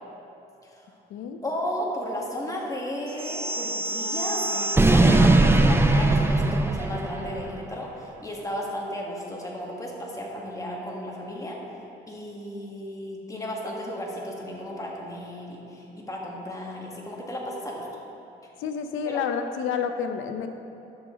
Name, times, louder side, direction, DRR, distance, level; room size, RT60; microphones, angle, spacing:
voice 1, 1.4-11.6 12.1-17.9 19.0-19.2, equal, 15° left, -2 dB, 1.7 m, -34 dB
sound 1, 3.2-7.5, right 2 dB, 10° right, 0.5 m, -21 dB
voice 2, 18.6-20.5, left 7 dB, 85° left, 7 dB, 0.7 m, -29 dB
11.0 x 6.4 x 3.8 m, 2.8 s
cardioid pair, 90°, 20 cm